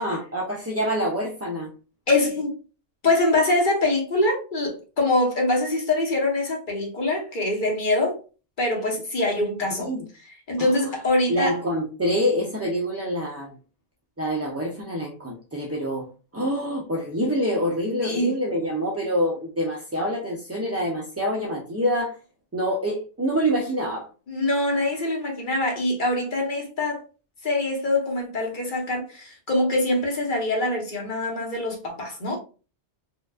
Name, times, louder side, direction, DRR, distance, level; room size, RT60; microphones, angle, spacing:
voice 1, 0.0-1.7 9.7-10.0 10.6-10.9 11.3-13.5 14.2-22.1 22.5-24.1, equal, 20° right, 0.4 m, -26 dB
voice 2, 2.1-2.6 3.0-8.2 8.6-9.9 10.3-11.6 18.0-18.3 24.3-27.0 27.4-32.4, left 2 dB, 45° left, 1.2 m, -24 dB
4.5 x 2.5 x 2.3 m
omnidirectional pair, 1.2 m